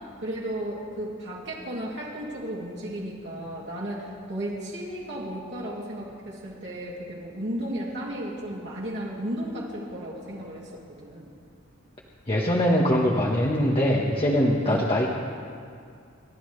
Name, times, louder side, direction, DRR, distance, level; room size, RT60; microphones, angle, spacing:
voice 1, 0.2-11.3 14.6-14.9, right 1 dB, 60° right, -5 dB, 2.8 m, -34 dB
voice 2, 12.3-15.1, equal, 25° left, -2 dB, 1.2 m, -22 dB
29.0 x 12.5 x 3.3 m, 2.3 s
head